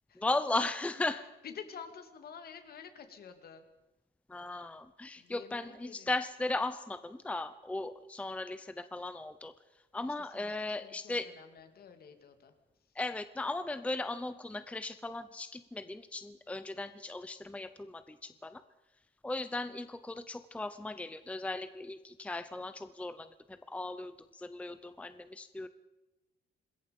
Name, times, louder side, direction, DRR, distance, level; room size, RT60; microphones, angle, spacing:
voice 1, 0.2-1.3 4.3-9.5 9.9-11.3 12.9-18.6 19.2-25.7, left 2 dB, 5° left, 12 dB, 0.7 m, -37 dB
voice 2, 1.4-3.6 5.2-6.1 10.3-12.5, left 7 dB, 55° left, 8 dB, 2.5 m, -49 dB
26.5 x 21.0 x 5.4 m, 1.0 s
cardioid pair, 150°, 19 cm